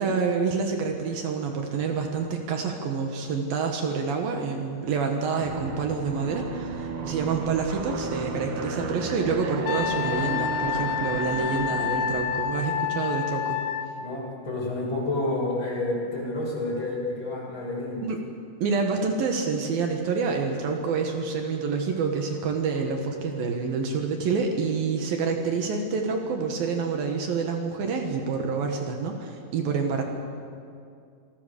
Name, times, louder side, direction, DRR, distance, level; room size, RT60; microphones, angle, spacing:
voice 1, 0.0-13.6 18.0-18.2 18.6-30.0, right 5 dB, 75° right, 3 dB, 3.4 m, -27 dB
Aircraft, 5.4-12.7, right 5 dB, 55° right, 1.6 m, -34 dB
Wind instrument woodwind instrument, 9.7-13.9, left 8 dB, 75° left, 2.5 m, -28 dB
voice 2, 14.0-18.0, left 2 dB, 30° left, -4 dB, 7.2 m, -29 dB
27.5 x 18.5 x 6.8 m, 2.3 s
omnidirectional pair, 4.2 m